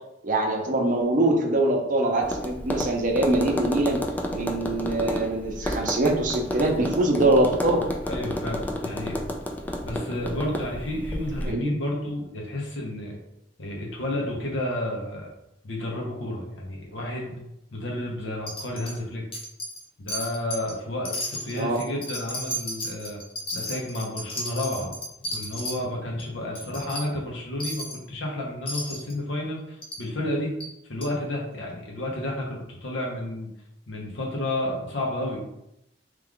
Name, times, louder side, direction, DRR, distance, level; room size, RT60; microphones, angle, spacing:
voice 1, 0.2-4.0 4.3-7.8 11.4-11.7 21.5-21.8, right 2 dB, 45° right, 1 dB, 0.6 m, -23 dB
Tap, 2.2-11.5, left 1 dB, 10° left, 0.3 m, -31 dB
voice 2, 8.0-9.2 9.8-13.2 13.6-15.3 15.6-17.3 17.7-19.2 20.0-23.2 23.5-25.0 25.3-30.5 30.9-33.5 33.9-35.5, left 1 dB, 90° left, -2 dB, 0.9 m, -31 dB
Wind chime, 18.5-19.0 19.3-19.8 20.1-20.7 21.0-25.8 26.2-26.3 26.5-27.0 27.6-28.0 28.7-29.1 29.8-30.0 30.6-30.7 31.0-31.1, equal, 30° left, 0.7 m, -33 dB
3.2 x 2.4 x 3.6 m, 0.82 s
head